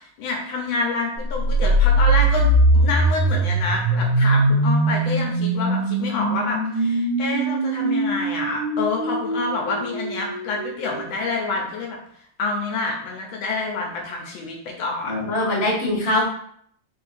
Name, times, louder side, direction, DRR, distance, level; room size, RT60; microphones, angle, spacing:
voice 1, 0.0-12.0 12.4-15.3, left 3 dB, 70° left, 0 dB, 1.4 m, -27 dB
sound 1, 1.3-11.2, right 1 dB, 85° right, 1.6 m, -21 dB
voice 2, 15.1-16.2, left 1 dB, 25° left, -6 dB, 0.8 m, -22 dB
3.6 x 2.7 x 4.1 m, 0.66 s
omnidirectional pair, 2.4 m